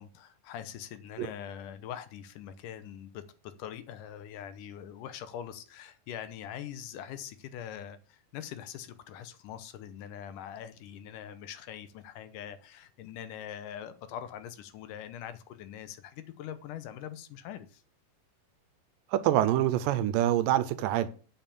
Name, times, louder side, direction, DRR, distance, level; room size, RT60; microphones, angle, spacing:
voice 1, 0.0-17.8, left 9 dB, 75° left, 2.3 m, -43 dB
voice 2, 19.1-21.1, right 12 dB, 80° right, 2.3 m, -26 dB
8.9 x 5.7 x 7.0 m
omnidirectional pair, 4.0 m